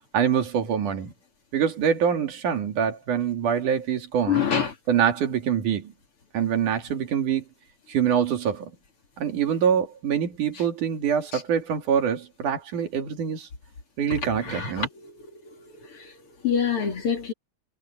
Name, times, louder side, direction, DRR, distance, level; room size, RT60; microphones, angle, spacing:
voice 1, 0.1-1.1 1.5-4.4 4.9-5.9 6.3-7.4 7.9-8.7 9.2-13.5 14.0-14.9, right 8 dB, 80° right, 3.8 m, -25 dB
voice 2, 4.3-4.7 14.4-14.9 16.4-17.3, left 7 dB, 45° left, 3.1 m, -24 dB
omnidirectional pair, 3.5 m